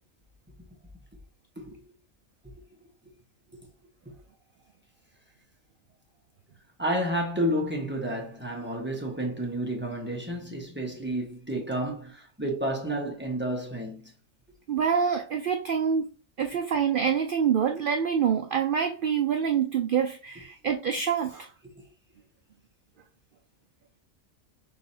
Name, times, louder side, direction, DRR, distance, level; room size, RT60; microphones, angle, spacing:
voice 1, 6.8-14.1, right 1 dB, 10° right, 1.1 m, -31 dB
voice 2, 14.7-16.1 16.4-21.5, right 7 dB, 75° right, 0.4 m, -26 dB
6.0 x 3.2 x 2.8 m
omnidirectional pair, 1.4 m